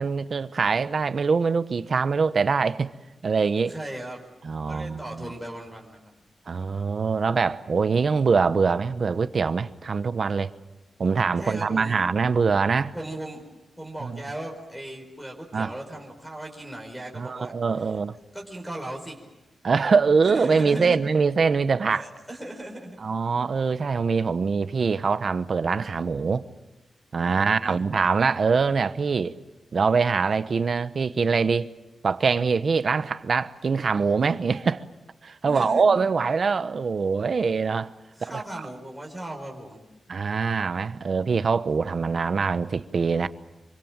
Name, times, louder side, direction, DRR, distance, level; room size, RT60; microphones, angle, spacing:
voice 1, 0.0-2.9 3.2-3.7 4.4-5.3 6.5-10.5 11.0-12.9 14.0-14.2 15.5-15.7 17.2-18.2 19.6-22.0 23.0-26.4 27.1-29.3 29.7-31.7 32.0-34.8 35.2-37.9 38.3-38.4 40.1-43.3, right 5 dB, 50° right, 1.0 m, -23 dB
voice 2, 3.7-4.2 4.7-6.0 11.4-12.0 12.9-13.4 13.8-17.5 18.3-19.3 20.2-21.0 21.9-23.0 27.2-27.9 35.4-35.8 38.1-39.8, right 1 dB, ahead, 4.7 m, -37 dB
26.0 x 24.5 x 7.5 m
wide cardioid pair, 130°, 0 cm